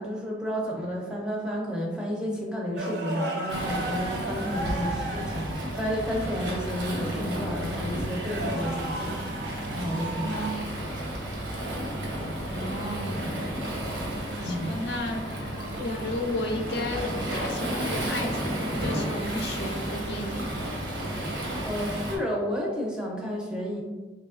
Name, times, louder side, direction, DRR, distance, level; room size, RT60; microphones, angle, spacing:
voice 1, 0.0-10.4 10.7-10.9 14.4-14.7 21.6-23.8, equal, 5° right, -2 dB, 0.5 m, -32 dB
sound 1, 2.8-5.9 7.9-10.6 13.0-13.2 15.5-15.8 18.7-18.9 21.0-21.3, right 1 dB, 60° right, 0.5 m, -35 dB
Waves surf, 3.5-22.2, right 1 dB, 90° right, 0.8 m, -32 dB
voice 2, 10.2-10.6 12.5-13.2 14.4-20.5, left 1 dB, 65° left, 2 dB, 0.5 m, -33 dB
4.2 x 3.0 x 2.4 m, 1.3 s
head